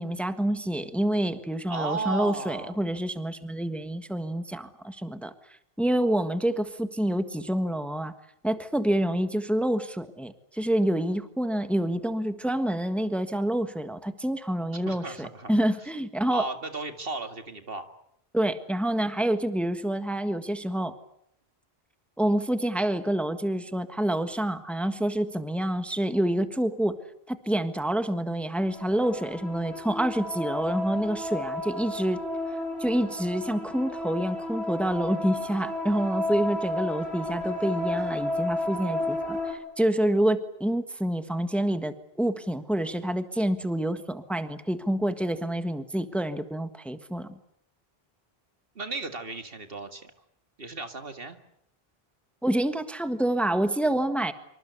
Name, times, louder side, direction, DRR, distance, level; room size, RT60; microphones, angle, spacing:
voice 1, 0.0-5.3 5.8-8.1 8.4-16.5 18.3-21.0 22.2-27.0 27.3-32.2 32.8-47.4 52.4-54.3, right 1 dB, ahead, 9 dB, 1.5 m, -27 dB
voice 2, 1.7-2.7 14.9-15.5 16.3-17.9 48.8-50.1 50.6-51.4, right 3 dB, 65° right, 8 dB, 2.3 m, -35 dB
sound 1, 28.7-39.5, left 1 dB, 85° right, 5.7 m, -32 dB
26.0 x 25.0 x 8.2 m, 0.73 s
omnidirectional pair, 1.0 m